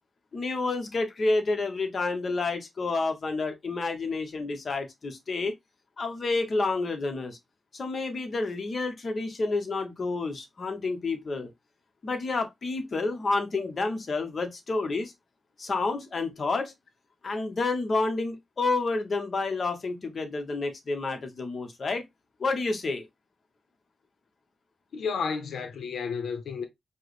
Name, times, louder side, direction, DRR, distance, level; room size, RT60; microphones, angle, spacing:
voice 1, 0.3-5.5 6.0-7.4 7.7-11.5 12.0-15.1 15.6-16.7 17.2-22.0 22.4-23.1, left 3 dB, 55° left, 0.9 m, -29 dB
voice 2, 24.9-26.6, left 5 dB, 85° left, 0.7 m, -31 dB
4.5 x 2.1 x 3.1 m
cardioid pair, 90°, 0 cm